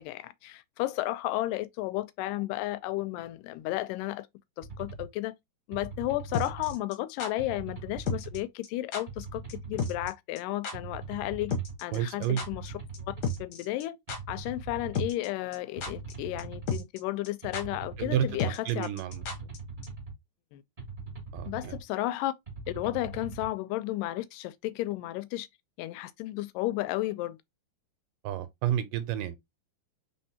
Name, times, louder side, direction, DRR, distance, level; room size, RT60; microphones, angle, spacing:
voice 1, 0.0-4.3 4.6-5.3 5.7-12.7 13.1-14.0 14.3-18.9 20.5-20.6 21.5-22.3 22.7-25.5 25.8-27.4, left 16 dB, 85° left, 2.1 m, -33 dB
sound 1, 4.6-5.1 5.7-6.7 7.4-8.4 9.1-10.1 10.7-11.8 12.4-13.4 14.1-15.1 15.8-16.8 17.4-18.5 19.1-20.1 20.8-21.8 22.5-23.5, right 4 dB, 20° right, 1.2 m, -41 dB
sound 2, 6.3-7.3 8.1-8.4 8.6-8.7 8.9-9.2 9.5-9.6 9.8-10.1 10.4-10.5 10.6-10.7 11.5-12.7 12.9-13.0 13.2-13.8 14.1-14.2 15.0-15.3 15.5-16.1 16.4-16.5 16.7-17.0 17.2-17.3 17.5-17.6 18.4-19.6 19.8-19.9, left 3 dB, 65° left, 1.7 m, -32 dB
voice 2, 11.9-12.4 18.0-19.3 21.3-21.8 28.2-29.4, right 11 dB, 80° right, 2.1 m, -30 dB
4.4 x 3.8 x 2.7 m
omnidirectional pair, 3.8 m